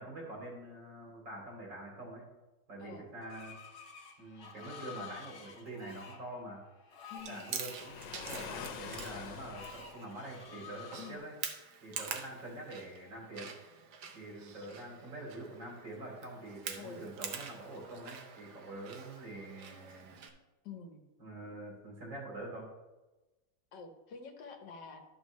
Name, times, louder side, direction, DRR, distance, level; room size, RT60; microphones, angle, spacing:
voice 1, 0.0-2.2 2.7-3.5 4.2-6.6 7.3-11.3 11.8-13.5 14.1-20.1 21.2-22.7, right 2 dB, 85° right, -3 dB, 3.5 m, -45 dB
Screech, 3.2-11.2, left 5 dB, 45° left, 1.3 m, -51 dB
voice 2, 7.1-7.5 11.0-11.3 16.8-17.1 20.6-21.0 23.7-25.0, left 5 dB, 70° left, 5 dB, 1.5 m, -48 dB
Chewing mastication, 7.2-20.3, right 6 dB, 70° right, 1.3 m, -46 dB
Waves surf, 7.7-9.8, left 7 dB, 90° left, 1.4 m, -44 dB
12.0 x 6.1 x 3.1 m, 1.1 s
omnidirectional pair, 1.9 m